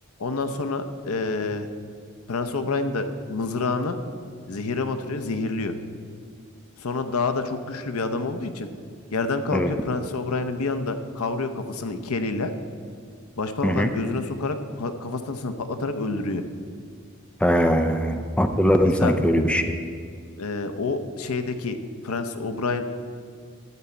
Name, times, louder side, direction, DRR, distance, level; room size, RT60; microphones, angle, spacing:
voice 1, 0.2-1.7 2.3-4.0 4.5-5.7 6.8-8.7 9.1-12.5 13.4-16.4 19.0-19.2 20.4-21.8 22.0-22.8, left 3 dB, 85° left, 9 dB, 0.7 m, -28 dB
voice 2, 17.4-19.7, equal, 5° left, 7 dB, 0.4 m, -21 dB
12.5 x 4.4 x 8.3 m, 2.1 s
head